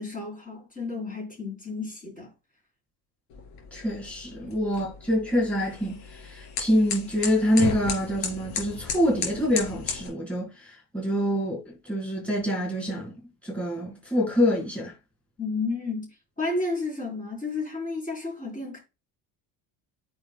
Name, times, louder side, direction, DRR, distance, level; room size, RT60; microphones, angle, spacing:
voice 1, 0.0-2.3 4.4-4.5 15.4-18.8, left 3 dB, 20° left, 3.8 m, -32 dB
sound 1, 3.3-10.1, left 6 dB, 80° left, 3.4 m, -35 dB
voice 2, 3.7-13.1 13.4-14.9, equal, 5° left, 4.1 m, -26 dB
8.6 x 6.0 x 2.2 m
cardioid pair, 110°, 44 cm